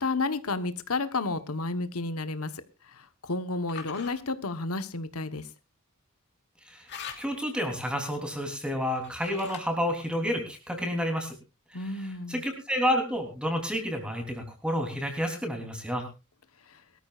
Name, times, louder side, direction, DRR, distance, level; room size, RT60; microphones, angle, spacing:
voice 1, 0.0-5.5 11.7-12.4 16.7-16.8, left 3 dB, 85° left, 11 dB, 1.1 m, -32 dB
sound 1, 1.1-1.4 3.7-4.1 6.9-7.5 9.0-9.8, left 7 dB, 50° left, 2.9 m, -43 dB
voice 2, 7.2-11.3 12.3-16.1, equal, 5° right, 4 dB, 3.3 m, -30 dB
22.0 x 13.5 x 2.4 m, 0.29 s
head